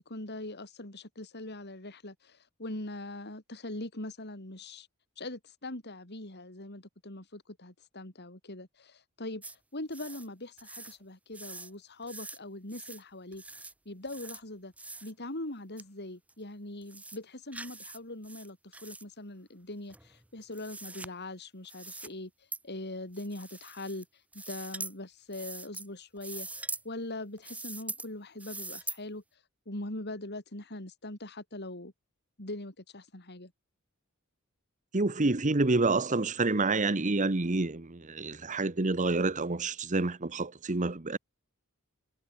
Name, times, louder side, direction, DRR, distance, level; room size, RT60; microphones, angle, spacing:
voice 1, 0.0-4.9 5.2-9.4 9.7-14.7 15.0-26.5 26.8-31.9 32.4-33.5, left 1 dB, 50° left, 4.2 m, -42 dB
sound 1, 9.4-9.5 9.9-10.3 10.6-11.0 11.3-11.7 12.0-12.4 12.7-13.0 13.3-13.7 14.1-14.4 14.8-15.1 15.8-15.9 16.3-16.4 16.8-17.2 17.5-18.0 18.2-19.0 19.9-21.1 21.7-22.1 22.5-22.6 23.1-24.0 24.3-24.9 25.3-25.9 26.2-26.8 27.4-28.1 28.4-29.0, right 3 dB, 5° right, 0.8 m, -42 dB
voice 2, 34.9-41.2, right 3 dB, 35° right, 1.0 m, -28 dB
head